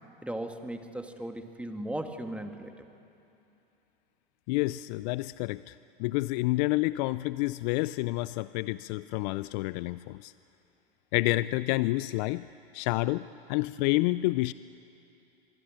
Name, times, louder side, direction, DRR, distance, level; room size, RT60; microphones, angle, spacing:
voice 1, 0.2-2.8, right 1 dB, 5° right, 5 dB, 2.1 m, -37 dB
voice 2, 4.5-10.3 11.1-12.5 12.7-14.5, left 20 dB, 50° left, 16 dB, 0.5 m, -29 dB
26.0 x 23.0 x 9.0 m, 2.8 s
hypercardioid pair, 100°, 29 cm